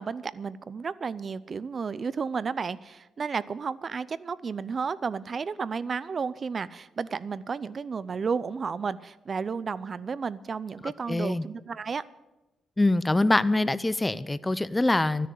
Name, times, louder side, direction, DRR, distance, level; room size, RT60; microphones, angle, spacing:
voice 1, 0.0-12.0, right 5 dB, 40° right, 18 dB, 0.6 m, -32 dB
voice 2, 10.8-11.4 12.8-15.3, left 2 dB, 15° left, 16 dB, 0.5 m, -24 dB
13.0 x 10.0 x 8.4 m, 0.99 s
cardioid pair, 115°, 0 cm